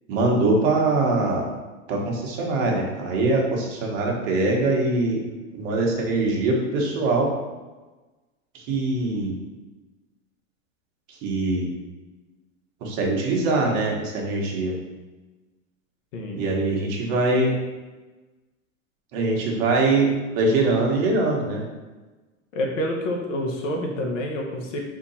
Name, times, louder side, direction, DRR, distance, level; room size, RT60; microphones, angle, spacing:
voice 1, 0.1-1.5 1.9-5.2 5.5-7.3 8.5-9.4 11.2-11.7 12.8-14.8 16.3-17.5 19.1-21.6, right 2 dB, 50° right, -1 dB, 1.2 m, -23 dB
voice 2, 22.5-24.8, left 1 dB, 70° left, 1 dB, 0.9 m, -28 dB
4.3 x 2.8 x 4.1 m, 1.2 s
supercardioid pair, 145°, 39 cm